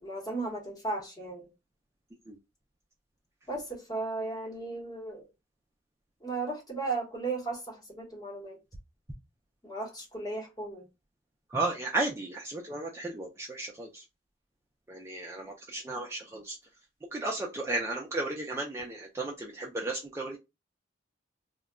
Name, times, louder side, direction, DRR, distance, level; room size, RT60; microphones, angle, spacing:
voice 1, 0.0-1.5 3.5-5.3 6.2-8.6 9.6-10.9, right 3 dB, 20° left, 0.8 m, -35 dB
voice 2, 11.5-14.0 14.9-16.6 17.1-20.4, right 2 dB, 15° right, 0.3 m, -34 dB
2.2 x 2.0 x 3.5 m
head